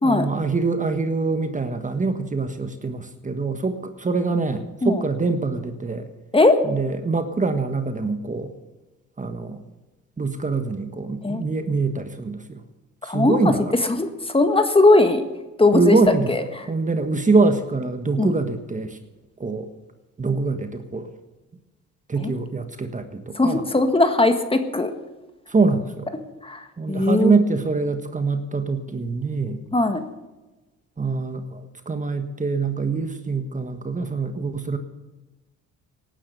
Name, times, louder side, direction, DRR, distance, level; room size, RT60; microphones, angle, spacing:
voice 1, 0.0-6.1 6.7-8.5 9.2-9.6 10.2-12.6 13.0-13.6 15.7-16.3 16.7-19.0 19.4-19.7 20.2-21.1 22.1-23.6 25.5-26.1 26.8-29.6 31.0-34.8, right 3 dB, 25° right, 8 dB, 1.4 m, -24 dB
voice 2, 13.0-13.5 14.0-15.2 15.6-16.0 16.3-16.6 18.2-18.3 22.2-22.3 23.3-24.9 26.4-27.4 29.7-30.0, left 2 dB, 20° left, 7 dB, 1.7 m, -19 dB
18.0 x 10.0 x 6.7 m, 1.1 s
cardioid pair, 90°, 30 cm